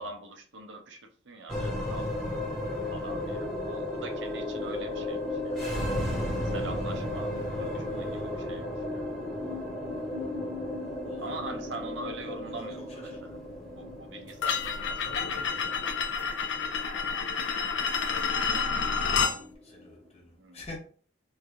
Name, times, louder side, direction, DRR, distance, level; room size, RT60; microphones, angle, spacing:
voice 1, 0.0-2.4 2.9-6.0 6.4-9.1 11.2-13.1 13.8-16.2 20.3-20.7, right 2 dB, 70° right, 0.7 m, -43 dB
sound 1, 1.5-20.0, left 1 dB, ahead, 0.9 m, -34 dB
voice 2, 7.1-8.5 11.0-11.8 12.2-13.4 18.1-20.8, left 1 dB, 35° left, 1.1 m, -49 dB
sound 2, 14.4-19.4, left 6 dB, 70° left, 0.5 m, -29 dB
3.2 x 2.5 x 3.5 m
head